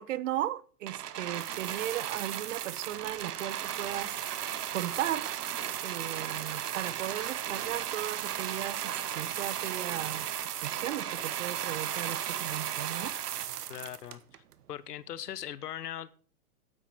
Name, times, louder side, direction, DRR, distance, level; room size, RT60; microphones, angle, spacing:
voice 1, 0.0-4.2 4.7-5.3 5.8-13.1, right 13 dB, 55° right, 0.6 m, -36 dB
sound 1, 0.9-14.5 15.3-15.4, right 10 dB, 75° right, 1.0 m, -35 dB
Walk footsteps, 1.3-11.3, right 4 dB, 25° right, 2.0 m, -53 dB
voice 2, 13.7-14.4 14.7-16.1, left 11 dB, 80° left, 0.9 m, -40 dB
8.9 x 8.5 x 4.3 m
hypercardioid pair, 135°, 47 cm